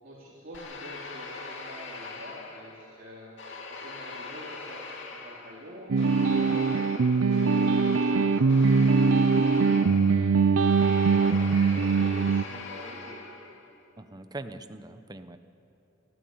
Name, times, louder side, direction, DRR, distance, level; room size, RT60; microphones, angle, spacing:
voice 1, 0.0-4.8 5.1-8.7 9.3-10.5 11.1-13.2, equal, 40° right, -6 dB, 3.9 m, -47 dB
sound 1, 0.5-3.0 3.4-13.7, left 3 dB, 60° left, 2.5 m, -41 dB
sound 2, 5.9-12.4, right 4 dB, 70° right, 0.5 m, -22 dB
voice 2, 14.0-15.4, right 2 dB, 20° right, 9 dB, 0.8 m, -41 dB
28.0 x 13.0 x 9.5 m, 2.9 s
head